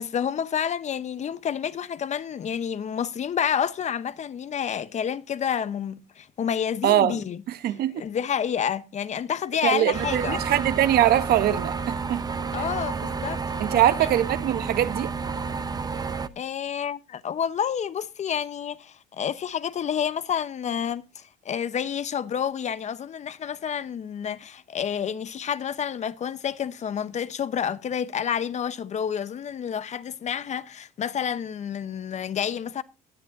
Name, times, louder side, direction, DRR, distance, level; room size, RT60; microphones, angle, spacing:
voice 1, 0.0-10.4 12.5-14.1 16.4-32.8, left 8 dB, 45° left, 0.9 m, -29 dB
voice 2, 6.8-7.2 7.6-8.0 9.6-12.2 13.6-15.1, right 12 dB, 65° right, 1.0 m, -22 dB
sound 1, 9.9-16.3, right 5 dB, 25° right, 0.8 m, -30 dB
17.0 x 10.5 x 2.7 m
cardioid pair, 110°, 17 cm